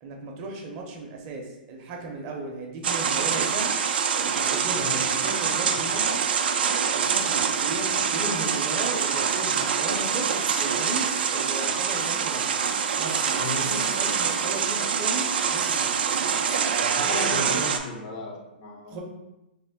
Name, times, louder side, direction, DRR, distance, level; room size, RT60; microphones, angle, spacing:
voice 1, 0.0-3.8 4.2-6.3 6.9-12.6 13.0-16.0 18.9-19.0, right 2 dB, 35° right, 1 dB, 0.6 m, -35 dB
sound 1, 2.8-17.8, right 7 dB, 75° right, 0.3 m, -25 dB
voice 2, 13.4-13.7 16.8-19.0, left 3 dB, 40° left, 2 dB, 0.5 m, -35 dB
3.6 x 2.0 x 3.4 m, 0.93 s
hypercardioid pair, 145°, 5 cm